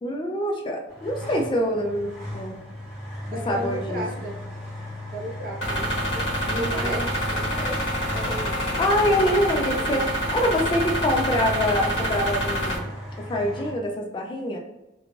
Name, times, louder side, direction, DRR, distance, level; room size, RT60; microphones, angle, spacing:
voice 1, 0.0-2.6 3.5-4.3 6.5-7.1 8.8-12.9 13.2-14.6, left 1 dB, 25° left, 1 dB, 0.3 m, -25 dB
sound 1, 0.9-13.7, equal, ahead, 0.9 m, -36 dB
voice 2, 3.2-4.4 5.1-7.8 8.1-8.8 9.2-9.3 9.8-10.0, equal, 50° right, -2 dB, 0.8 m, -35 dB
sound 2, 5.6-12.8, equal, 85° left, 1.1 m, -27 dB
2.4 x 2.2 x 3.0 m, 0.99 s
head